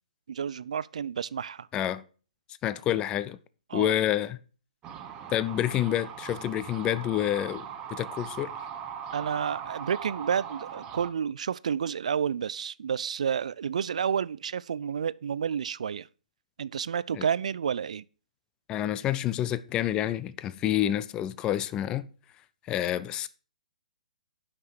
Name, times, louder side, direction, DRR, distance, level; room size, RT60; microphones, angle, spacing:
voice 1, 0.3-1.7 3.7-3.9 9.1-16.1 16.6-18.0, right 7 dB, 65° right, 0.4 m, -30 dB
voice 2, 1.7-2.0 2.6-3.4 3.7-4.4 5.3-8.6 17.1-17.3 18.7-22.1 22.7-23.3, left 12 dB, 20° left, 0.5 m, -28 dB
sound 1, 4.8-11.1, right 8 dB, 20° right, 1.0 m, -40 dB
9.8 x 6.0 x 4.9 m
figure-of-eight pair, 130°, 4 cm